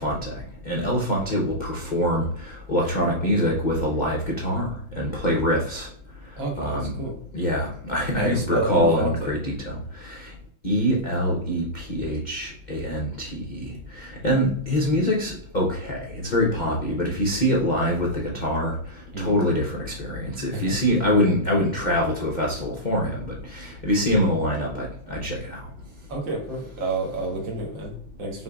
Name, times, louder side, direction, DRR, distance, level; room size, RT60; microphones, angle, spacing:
voice 1, 0.0-5.9 6.6-6.9 7.3-10.3 10.6-25.7, equal, 60° left, -3 dB, 0.4 m, -25 dB
voice 2, 6.4-7.2 8.2-9.3 19.1-19.3 20.5-20.8 26.1-28.4, right 1 dB, 70° right, 0 dB, 2.0 m, -29 dB
5.5 x 3.5 x 2.3 m, 0.63 s
omnidirectional pair, 2.1 m